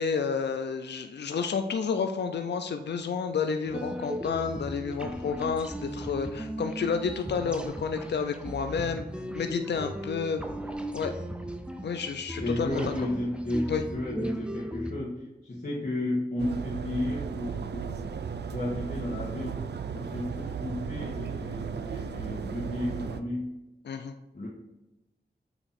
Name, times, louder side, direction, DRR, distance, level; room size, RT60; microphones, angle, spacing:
voice 1, 0.0-9.1 9.3-10.4 10.9-11.1 11.8-12.9 13.7-13.8 23.8-24.2, left 5 dB, 75° left, 7 dB, 0.5 m, -30 dB
sound 1, 3.7-14.9, equal, 5° right, 0.7 m, -37 dB
voice 2, 12.4-18.1 18.5-19.6 19.9-23.5 24.3-24.5, left 1 dB, 55° left, -6 dB, 1.4 m, -33 dB
sound 2, 16.4-23.2, right 6 dB, 70° right, 0.4 m, -35 dB
7.8 x 2.9 x 4.3 m, 1.0 s
cardioid pair, 45°, 18 cm